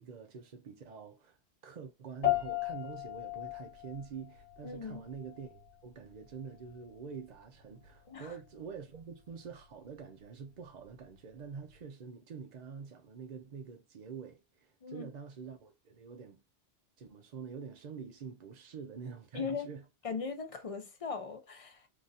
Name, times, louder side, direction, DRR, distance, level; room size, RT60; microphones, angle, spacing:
voice 1, 0.0-16.4 17.0-19.8, right 6 dB, 55° right, 0.5 m, -46 dB
sound 1, 2.2-11.8, left 14 dB, 70° left, 1.4 m, -39 dB
voice 2, 4.6-5.0 8.1-8.3 14.8-15.1 19.3-19.7 20.0-21.9, left 5 dB, 40° left, 0.6 m, -39 dB
2.9 x 2.5 x 4.0 m
omnidirectional pair, 1.2 m